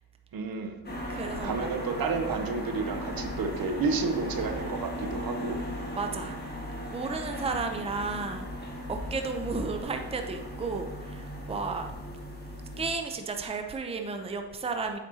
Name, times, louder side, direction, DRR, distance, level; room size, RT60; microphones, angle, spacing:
voice 1, 0.3-0.8 1.4-5.6 7.4-7.5, right 4 dB, 55° right, 7 dB, 0.8 m, -31 dB
sound 1, 0.8-12.9, equal, 25° left, 1.7 m, -37 dB
voice 2, 1.1-1.8 5.9-6.4 6.9-8.5 8.9-11.9 12.8-15.0, right 4 dB, 15° right, 5 dB, 0.6 m, -33 dB
7.8 x 5.1 x 2.8 m, 1.2 s
cardioid pair, 75°, 41 cm